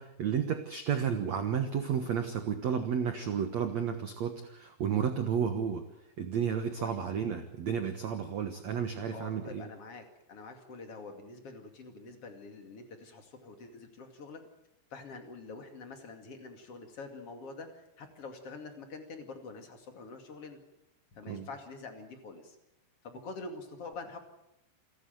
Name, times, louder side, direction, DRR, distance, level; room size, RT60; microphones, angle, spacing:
voice 1, 0.0-5.8 6.2-9.7 21.3-21.5, right 7 dB, 90° right, 7 dB, 1.5 m, -32 dB
voice 2, 6.8-7.1 9.1-14.4 14.9-20.6 21.1-22.6 23.0-24.2, left 3 dB, 40° left, 5 dB, 2.7 m, -46 dB
28.0 x 12.5 x 9.3 m, 0.87 s
omnidirectional pair, 5.3 m